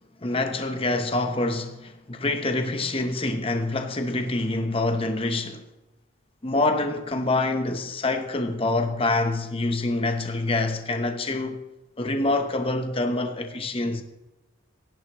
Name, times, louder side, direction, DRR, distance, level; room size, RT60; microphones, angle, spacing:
voice 1, 0.2-5.6 6.4-11.6 12.0-14.0, left 2 dB, 25° left, 0.9 m, -26 dB
24.5 x 11.0 x 3.1 m
head